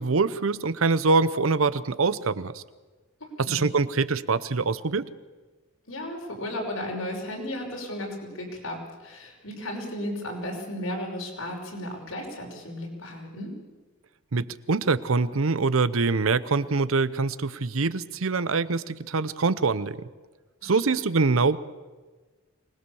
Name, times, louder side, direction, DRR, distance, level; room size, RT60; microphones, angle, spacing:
voice 1, 0.0-2.6 3.5-5.1 14.3-20.1 20.6-21.6, right 4 dB, 75° right, 16 dB, 0.8 m, -24 dB
voice 2, 5.9-13.5 20.6-20.8, left 1 dB, 85° left, 0 dB, 5.6 m, -34 dB
25.0 x 20.0 x 7.0 m, 1.3 s
head